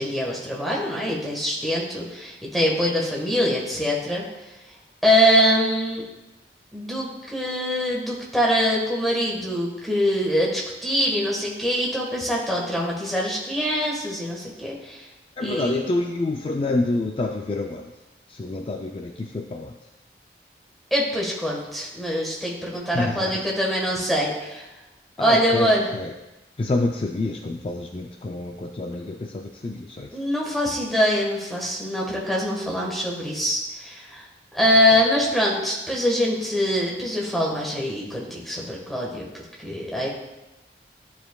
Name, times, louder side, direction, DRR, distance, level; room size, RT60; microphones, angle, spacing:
voice 1, 0.0-4.2 5.0-6.0 6.7-15.0 15.4-15.9 20.9-24.6 25.2-25.9 30.1-34.2 34.5-39.2 39.6-40.1, equal, ahead, -4 dB, 1.3 m, -23 dB
voice 2, 15.4-17.9 18.3-19.7 22.9-23.4 25.2-26.1 26.6-30.1, left 2 dB, 30° left, 2 dB, 0.3 m, -27 dB
12.5 x 4.8 x 2.3 m, 1.0 s
head